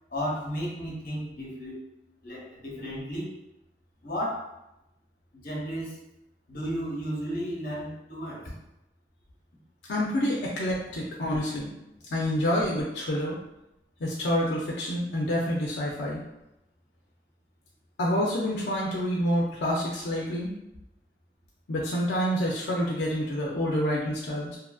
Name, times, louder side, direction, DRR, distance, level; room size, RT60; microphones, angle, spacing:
voice 1, 0.1-1.8 2.2-3.3 4.0-4.5 5.3-6.0 6.5-8.5, equal, 55° left, -3 dB, 0.8 m, -33 dB
voice 2, 9.9-11.7 12.1-13.4 14.0-16.2 18.0-20.5 21.7-24.6, equal, 80° left, -4 dB, 0.5 m, -27 dB
2.7 x 2.5 x 2.3 m, 0.88 s
head